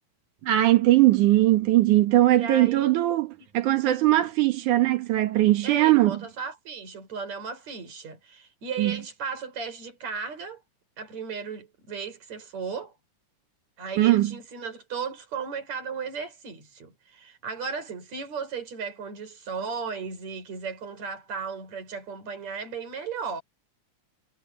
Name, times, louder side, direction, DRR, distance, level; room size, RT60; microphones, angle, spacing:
voice 1, 0.4-6.2 8.8-9.0 14.0-14.3, right 15 dB, 70° right, 2.7 m, -20 dB
voice 2, 2.4-2.9 4.2-4.3 5.6-10.6 11.0-12.9 13.8-23.4, right 5 dB, 55° right, 7.3 m, -35 dB
omnidirectional pair, 3.7 m